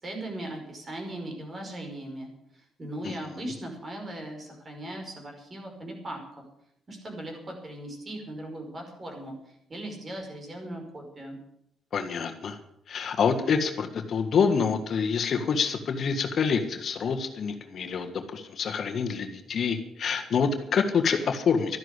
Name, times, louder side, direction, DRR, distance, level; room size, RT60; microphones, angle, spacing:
voice 1, 0.0-6.2 6.9-11.4, right 1 dB, 35° right, 2 dB, 5.3 m, -39 dB
voice 2, 11.9-12.6 12.9-21.8, left 6 dB, 55° left, 6 dB, 1.6 m, -27 dB
12.5 x 11.0 x 8.1 m, 0.77 s
cardioid pair, 90°, 0 cm